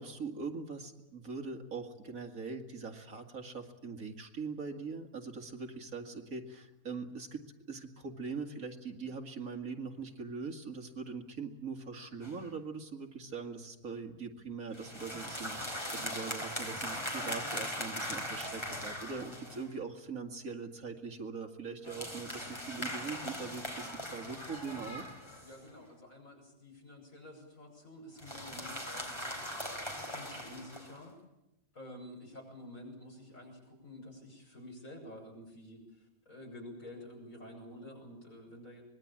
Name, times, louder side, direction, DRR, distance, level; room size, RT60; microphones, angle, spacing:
voice 1, 0.0-7.4 7.7-25.1, right 4 dB, 70° right, 4 dB, 2.7 m, -42 dB
sound 1, 12.2-12.5 14.7-19.7 21.8-25.7 28.2-31.0, equal, 20° left, 4.3 m, -40 dB
voice 2, 25.4-29.4 29.9-31.1 31.7-38.8, left 1 dB, 65° left, 0 dB, 8.0 m, -50 dB
25.0 x 21.0 x 8.8 m, 0.88 s
omnidirectional pair, 1.5 m